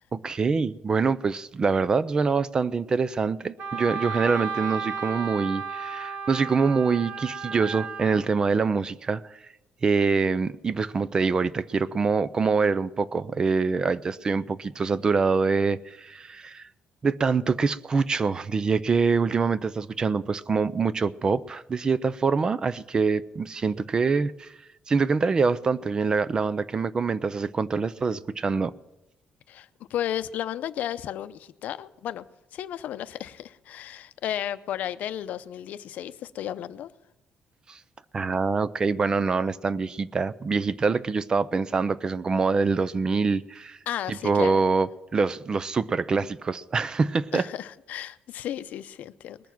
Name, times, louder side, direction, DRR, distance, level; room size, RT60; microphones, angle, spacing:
voice 1, 0.1-9.2 9.8-16.6 17.0-24.5 24.9-28.7 37.7-37.8 38.1-43.8 44.1-47.4, right 4 dB, 25° right, 0.4 m, -25 dB
Wind instrument woodwind instrument, 3.6-8.2, right 5 dB, 55° right, 2.1 m, -33 dB
voice 2, 29.5-32.2 32.5-36.9 43.9-44.6 47.3-49.4, left 11 dB, 70° left, 0.6 m, -33 dB
20.5 x 7.0 x 6.0 m
cardioid pair, 145°, 3 cm